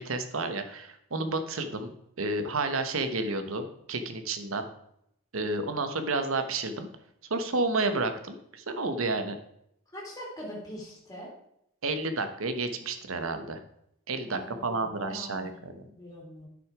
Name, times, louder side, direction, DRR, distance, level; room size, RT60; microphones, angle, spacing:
voice 1, 0.0-1.9 2.2-4.7 5.3-6.9 7.3-9.4 11.8-13.6 14.1-15.8, right 3 dB, 75° right, 9 dB, 1.1 m, -31 dB
voice 2, 9.9-11.3 14.3-15.7 15.9-16.5, equal, 15° left, -3 dB, 2.6 m, -43 dB
10.5 x 6.1 x 4.8 m, 0.75 s
head